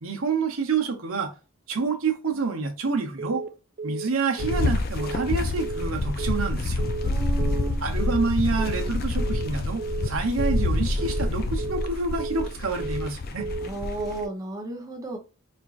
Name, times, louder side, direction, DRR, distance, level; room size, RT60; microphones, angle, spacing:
voice 1, 0.0-1.3 1.7-3.4 3.8-6.8 7.8-13.4, right 4 dB, 70° right, 0.9 m, -28 dB
Telephone, 3.2-3.5 3.8-4.1 4.4-4.7 5.0-5.3 5.6-5.9 6.2-6.5 6.8-7.1 7.4-7.7 8.0-8.3 8.6-8.9 9.2-9.5 9.8-10.1 10.4-10.7 11.0-11.3 11.6-11.9 12.2-12.5 12.8-13.1 13.4-13.7 14.0-14.3, right 3 dB, 40° right, 0.3 m, -33 dB
sound 1, 4.4-14.2, left 2 dB, 45° left, 0.4 m, -27 dB
voice 2, 7.0-7.8 13.6-15.2, right 2 dB, 15° right, 0.7 m, -34 dB
4.3 x 2.5 x 2.4 m
head